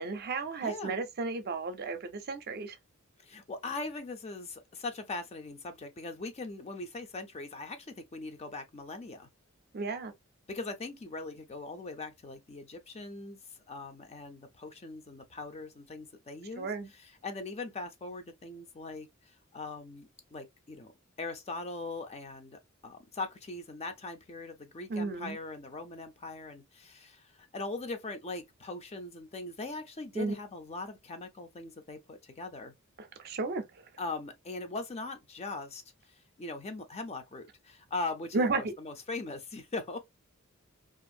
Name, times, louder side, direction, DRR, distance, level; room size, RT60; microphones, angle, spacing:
voice 1, 0.0-2.8 9.7-10.1 16.6-16.9 24.9-25.4 30.1-30.3 33.0-33.6 38.3-38.7, right 3 dB, 50° right, 0.5 m, -33 dB
voice 2, 0.6-0.9 3.2-9.3 10.5-13.4 13.7-19.1 19.5-20.9 21.2-32.7 34.0-35.8 36.4-40.0, left 3 dB, 30° left, 0.5 m, -40 dB
2.5 x 2.4 x 2.6 m
head